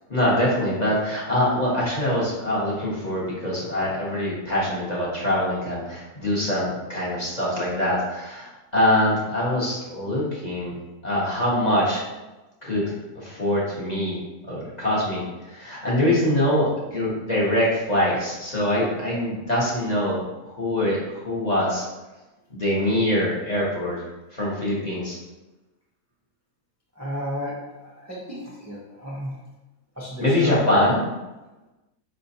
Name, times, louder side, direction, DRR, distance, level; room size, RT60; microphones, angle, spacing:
voice 1, 0.1-10.7 11.0-12.0 12.6-14.2 14.5-21.8 22.5-24.0 24.3-25.2 30.2-31.0, left 1 dB, 30° left, -6 dB, 0.9 m, -24 dB
voice 2, 27.0-29.3 30.0-31.0, left 1 dB, 20° right, -6 dB, 0.4 m, -32 dB
5.1 x 3.3 x 2.7 m, 1.1 s
omnidirectional pair, 1.7 m